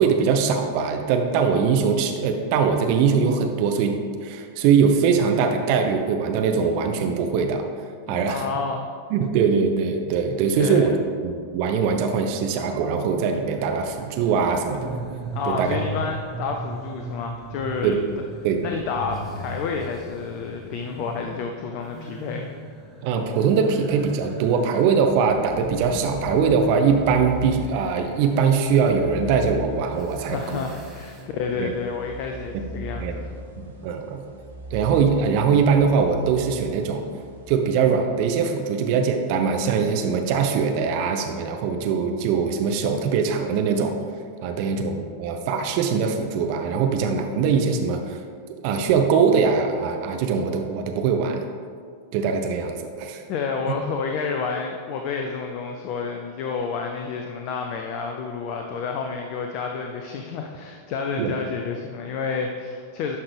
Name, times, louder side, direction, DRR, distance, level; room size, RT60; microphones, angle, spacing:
voice 1, 0.0-7.6 8.1-8.4 9.1-10.9 11.2-14.9 15.4-15.8 17.8-18.0 18.4-18.6 23.0-30.6 31.6-31.7 33.0-33.1 33.6-34.2 34.7-37.0 37.5-43.9 44.4-48.2 48.6-51.4 52.1-53.2 61.2-61.3, right 6 dB, 45° right, 5 dB, 0.7 m, -22 dB
voice 2, 8.1-8.9 10.6-11.0 15.3-18.0 18.6-22.5 30.3-33.3 53.3-63.2, left 5 dB, 45° left, 3 dB, 0.6 m, -30 dB
sound 1, 13.3-31.2, right 1 dB, 25° right, 1.4 m, -38 dB
sound 2, 26.3-38.2, right 1 dB, 70° right, 1.3 m, -40 dB
11.0 x 5.9 x 3.4 m, 2.1 s
figure-of-eight pair, 90°, 0 cm